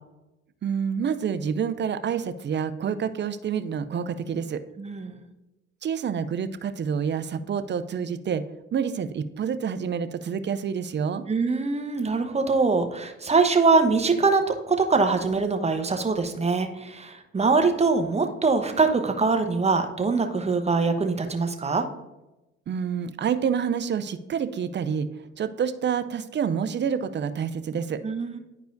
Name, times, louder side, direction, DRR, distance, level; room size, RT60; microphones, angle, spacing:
voice 1, 0.6-4.6 5.8-8.4 8.7-11.2 22.7-25.1 25.4-28.0, right 7 dB, 40° right, 12 dB, 0.5 m, -28 dB
voice 2, 4.8-5.2 11.3-21.9 28.0-28.4, right 4 dB, 20° right, 6 dB, 0.9 m, -23 dB
10.5 x 4.7 x 2.6 m, 0.98 s
supercardioid pair, 65°, 29 cm